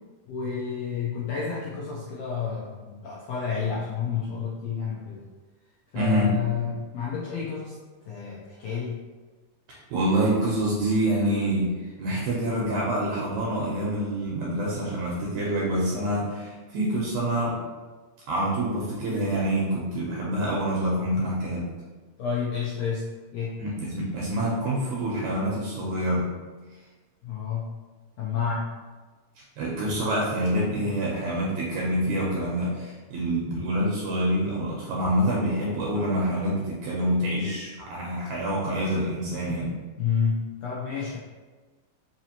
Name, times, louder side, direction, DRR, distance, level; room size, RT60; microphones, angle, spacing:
voice 1, 0.3-5.2 5.9-7.7 8.1-9.0 22.2-23.6 27.2-27.7 28.2-28.8 40.0-41.2, left 6 dB, 85° left, -6 dB, 1.4 m, -30 dB
voice 2, 6.0-6.4 9.7-17.6 18.3-21.7 23.6-26.3 29.6-39.8, right 1 dB, 75° right, -4 dB, 1.8 m, -26 dB
4.9 x 2.9 x 2.7 m, 1.3 s
omnidirectional pair, 3.6 m